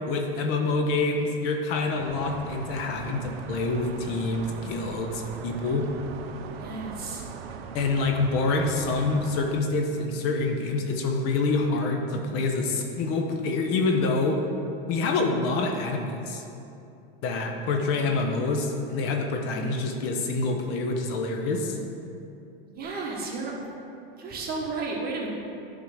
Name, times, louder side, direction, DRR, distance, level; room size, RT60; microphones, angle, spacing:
voice 1, 0.1-5.9 7.7-14.4 14.9-16.4 17.2-21.8, left 3 dB, 45° left, 2 dB, 0.9 m, -26 dB
sound 1, 2.0-9.6, right 6 dB, 75° right, 0.6 m, -40 dB
voice 2, 6.6-7.2 19.4-19.7 22.7-23.5 24.1-25.3, right 3 dB, 30° right, -3 dB, 1.5 m, -33 dB
9.5 x 3.9 x 4.9 m, 2.7 s
supercardioid pair, 120°, 30 cm